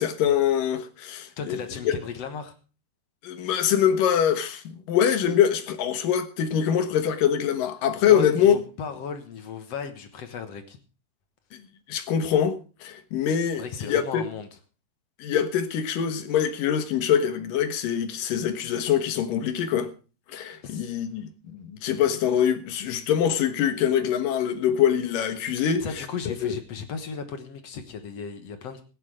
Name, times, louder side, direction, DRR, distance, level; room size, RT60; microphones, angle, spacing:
voice 1, 0.0-1.6 1.8-2.0 3.2-8.6 11.5-11.6 11.9-14.2 15.2-19.9 20.3-25.8 26.3-26.5, left 9 dB, 85° left, 3.1 m, -24 dB
voice 2, 1.4-2.5 8.0-10.8 13.6-14.5 20.6-20.9 25.6-28.8, left 6 dB, 60° left, 2.1 m, -36 dB
16.5 x 10.0 x 5.0 m
omnidirectional pair, 3.8 m